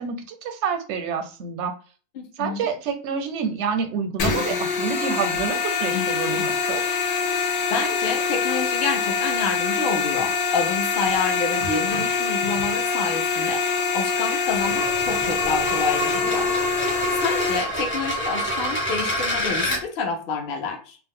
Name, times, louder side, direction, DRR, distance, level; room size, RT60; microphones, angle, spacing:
voice 1, 0.0-1.7 2.4-6.8, right 6 dB, 85° right, 6 dB, 0.9 m, -28 dB
voice 2, 2.2-2.7 7.7-16.9 17.2-21.0, left 5 dB, 60° left, 3 dB, 0.7 m, -28 dB
sound 1, 4.2-17.6, left 5 dB, 90° left, 0.9 m, -24 dB
sound 2, 14.5-19.8, equal, 15° left, 0.5 m, -27 dB
2.3 x 2.0 x 3.6 m, 0.38 s
omnidirectional pair, 1.1 m